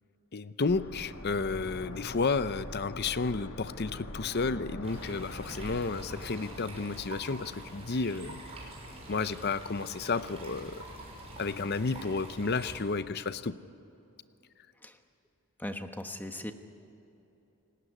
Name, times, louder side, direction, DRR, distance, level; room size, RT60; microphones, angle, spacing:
voice 1, 0.3-8.4 9.1-10.8 11.4-13.6, left 4 dB, 45° left, 14 dB, 0.7 m, -32 dB
sound 1, 0.7-9.4 9.7-9.8, left 1 dB, 65° left, 2.5 m, -44 dB
sound 2, 4.8-12.8, right 1 dB, 30° right, 6.2 m, -46 dB
voice 2, 15.6-16.5, left 1 dB, 10° left, 6 dB, 1.2 m, -38 dB
29.0 x 18.5 x 9.8 m, 3.0 s
head